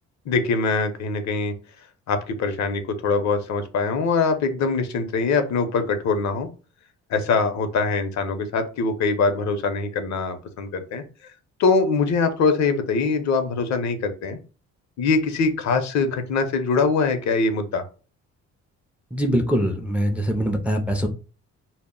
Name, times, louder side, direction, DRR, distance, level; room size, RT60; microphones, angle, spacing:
voice 1, 0.3-1.5 2.1-6.5 7.1-11.0 11.6-14.4 15.0-17.8, left 4 dB, 65° left, 8 dB, 0.6 m, -23 dB
voice 2, 19.1-21.1, equal, 5° right, 3 dB, 0.3 m, -23 dB
2.0 x 2.0 x 3.6 m, 0.35 s
cardioid pair, 90°, 30 cm